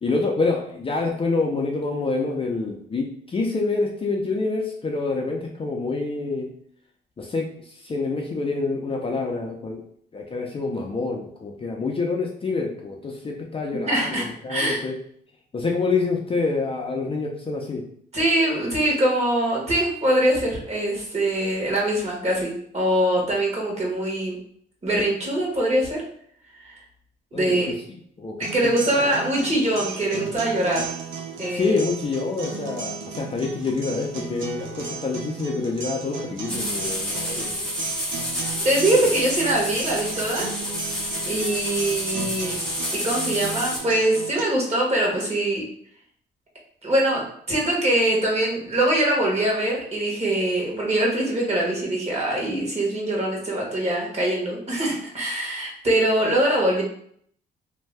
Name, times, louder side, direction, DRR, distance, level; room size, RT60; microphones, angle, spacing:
voice 1, 0.0-6.5 7.2-9.8 10.1-14.9 15.5-17.8 27.3-27.7 28.2-28.7 29.0-29.1 31.5-37.5 38.9-39.1, left 3 dB, 30° left, 0 dB, 0.5 m, -27 dB
voice 2, 13.9-14.8 18.1-24.4 24.8-26.0 26.6-26.8 27.3-27.7 28.4-30.9 31.4-31.8 38.6-40.5 41.2-42.5 42.9-45.6 46.8-56.8, right 1 dB, 35° right, -2 dB, 1.2 m, -23 dB
sound 1, 28.4-44.4, right 5 dB, 80° right, 0.7 m, -35 dB
sound 2, 36.5-43.8, equal, 5° left, 0.9 m, -29 dB
2.6 x 2.2 x 3.3 m, 0.63 s
cardioid pair, 90°, 20 cm